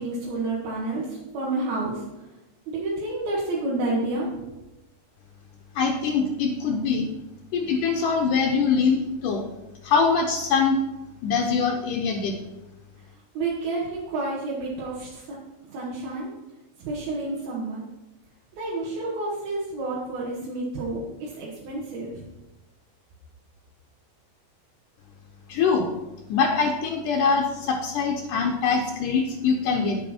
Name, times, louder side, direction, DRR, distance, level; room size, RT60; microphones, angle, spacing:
voice 1, 0.0-2.0 2.7-4.3 13.4-15.2 15.7-16.3 16.8-17.8 18.5-22.2, right 2 dB, 90° right, -6 dB, 3.6 m, -29 dB
voice 2, 5.8-7.1 7.5-9.4 9.8-10.8 11.2-12.3 25.5-25.9 26.3-30.0, left 5 dB, 70° left, 2 dB, 2.3 m, -23 dB
10.0 x 9.0 x 4.3 m, 1.0 s
omnidirectional pair, 4.2 m